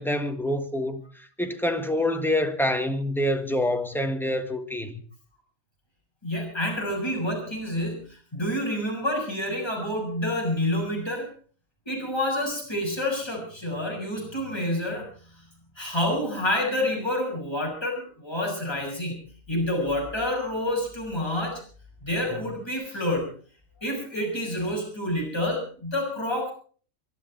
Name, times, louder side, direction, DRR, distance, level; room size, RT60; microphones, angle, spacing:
voice 1, 0.0-5.0, left 1 dB, ahead, 1.5 m, -26 dB
voice 2, 6.2-8.0 8.3-11.3 11.9-15.1 15.8-19.2 19.5-21.6 22.0-23.3 23.8-26.5, left 1 dB, 20° left, 6.9 m, -28 dB
24.5 x 12.5 x 4.5 m
omnidirectional pair, 1.3 m